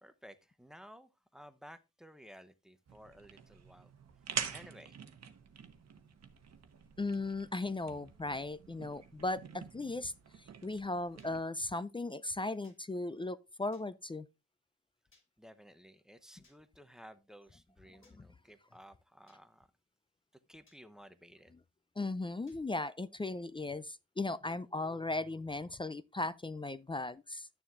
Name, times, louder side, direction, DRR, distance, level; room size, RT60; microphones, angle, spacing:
voice 1, 0.0-3.9 4.5-5.0 15.4-19.7 20.5-21.5, equal, ahead, 0.8 m, -55 dB
sound 1, 2.9-11.4, right 7 dB, 60° right, 1.0 m, -46 dB
voice 2, 7.0-10.1 10.4-14.3 22.0-27.5, left 2 dB, 15° left, 0.4 m, -37 dB
sound 2, 11.2-11.3 12.6-12.8 13.7-13.9 15.1-15.3 16.4-16.6 18.0-18.2 19.3-19.4 20.7-20.8 22.5-22.6, left 2 dB, 45° left, 2.8 m, -68 dB
11.0 x 6.9 x 2.5 m
cardioid pair, 90°, 30 cm